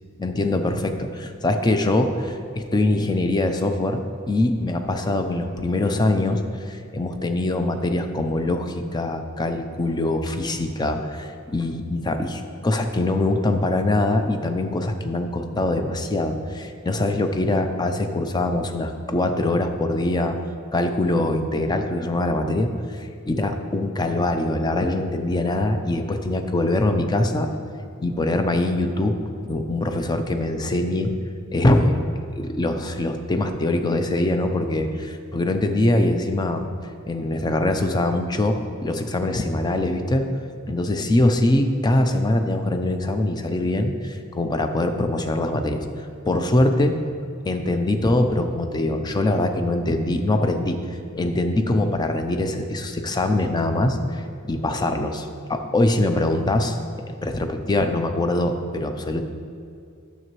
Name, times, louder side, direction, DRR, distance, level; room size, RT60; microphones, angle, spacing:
voice 1, 0.2-6.4 6.7-20.4 20.7-22.7 23.0-27.5 28.0-31.1 31.5-32.0 32.3-36.6 37.1-40.3 40.7-45.9 46.3-47.0 47.4-50.8 51.1-55.2 55.5-56.8 57.1-59.2, left 2 dB, 20° left, 6 dB, 0.4 m, -23 dB
9.3 x 6.8 x 3.1 m, 2.4 s
head